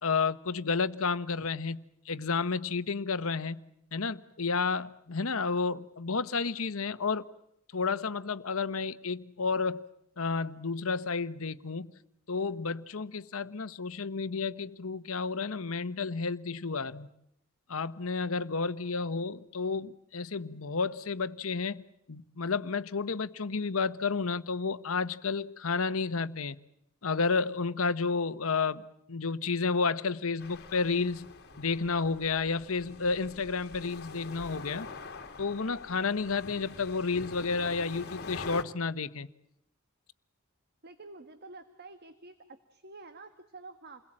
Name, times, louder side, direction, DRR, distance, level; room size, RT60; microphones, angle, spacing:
voice 1, 0.0-3.6 3.9-7.2 7.7-9.9 10.2-11.9 12.3-17.1 17.7-26.6 27.0-28.8 29.1-31.3 31.6-34.9 35.4-39.3, left 4 dB, 85° left, 1.1 m, -31 dB
sound 1, 30.4-38.6, left 3 dB, 50° left, 2.3 m, -45 dB
voice 2, 40.8-44.0, right 3 dB, 50° right, 1.6 m, -49 dB
29.0 x 21.5 x 8.8 m
head